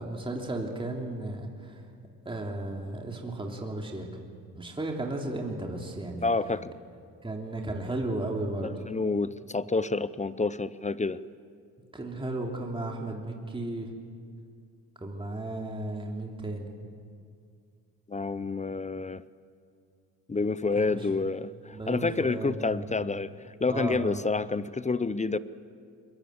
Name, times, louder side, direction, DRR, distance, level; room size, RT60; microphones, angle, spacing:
voice 1, 0.0-1.7 2.2-4.1 4.5-6.3 7.2-8.7 11.9-13.9 15.0-16.7 20.7-21.0 21.7-22.9 23.7-24.2, right 2 dB, 15° right, 0 dB, 3.1 m, -34 dB
voice 2, 6.2-6.7 8.6-11.2 18.1-19.2 20.3-25.4, left 3 dB, 20° left, 16 dB, 0.7 m, -29 dB
22.0 x 21.5 x 8.1 m, 2.3 s
cardioid pair, 80°, 38 cm